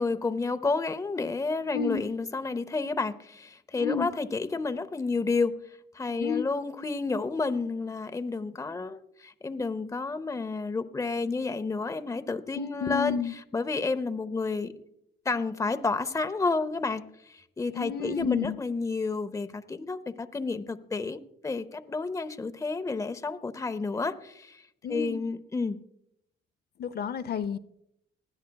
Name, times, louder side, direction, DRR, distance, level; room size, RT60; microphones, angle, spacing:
voice 1, 0.0-5.6 5.9-13.2 13.5-14.7 15.2-24.6 24.9-25.8, left 3 dB, 15° left, 0.7 m, -30 dB
voice 2, 1.7-2.0 3.8-4.1 6.2-6.4 12.5-13.3 17.7-18.6 24.8-25.2 26.8-27.6, left 7 dB, 55° left, 0.7 m, -30 dB
19.5 x 12.5 x 2.3 m
cardioid pair, 90°, 20 cm